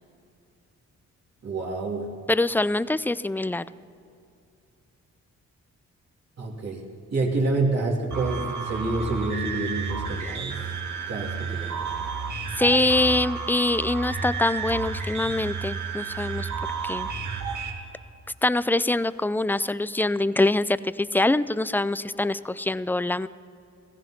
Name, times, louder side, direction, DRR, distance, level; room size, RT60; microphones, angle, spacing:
voice 1, 1.4-2.1 6.4-6.8 7.1-10.6 11.1-11.8, right 2 dB, 55° right, -2 dB, 3.1 m, -28 dB
voice 2, 2.3-3.7 12.6-16.5 16.8-17.1 18.4-23.3, left 2 dB, 5° left, 17 dB, 0.3 m, -24 dB
sound 1, 8.1-17.7, right 5 dB, 70° right, 2.1 m, -31 dB
16.0 x 15.0 x 5.9 m, 2.6 s
cardioid pair, 70°, 31 cm